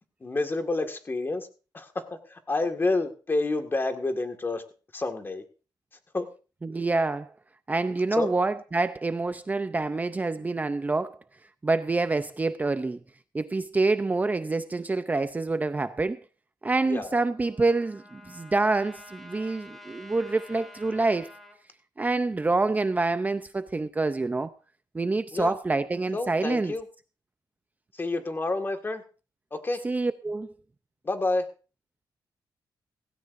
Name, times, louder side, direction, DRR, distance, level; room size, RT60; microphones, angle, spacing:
voice 1, 0.2-1.5 1.7-4.6 4.9-5.4 6.1-6.3 8.1-8.3 16.8-17.2 25.3-25.5 26.1-26.9 28.0-29.0 29.5-29.8 31.0-31.4, left 2 dB, 30° left, 1.9 m, -29 dB
voice 2, 6.6-7.3 7.7-11.2 11.6-13.0 13.3-16.2 16.6-21.3 22.0-24.5 24.9-26.7 29.8-30.5, right 3 dB, 20° right, 0.6 m, -27 dB
Trumpet, 17.0-21.6, left 1 dB, ahead, 3.3 m, -49 dB
16.5 x 16.5 x 2.6 m
cardioid pair, 110°, 8 cm